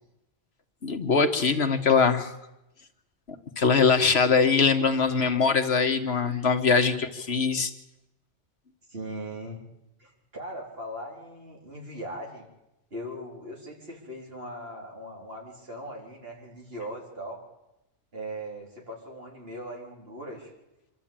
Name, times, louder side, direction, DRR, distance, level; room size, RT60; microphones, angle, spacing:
voice 1, 0.8-2.4 3.6-7.7, left 5 dB, 65° left, 7 dB, 1.6 m, -22 dB
voice 2, 5.0-5.7 6.1-6.5 6.9-7.2 8.9-9.6 10.0-12.5 12.9-17.4 18.1-20.5, right 1 dB, 55° right, -1 dB, 4.4 m, -40 dB
25.5 x 13.0 x 8.9 m, 0.92 s
omnidirectional pair, 1.2 m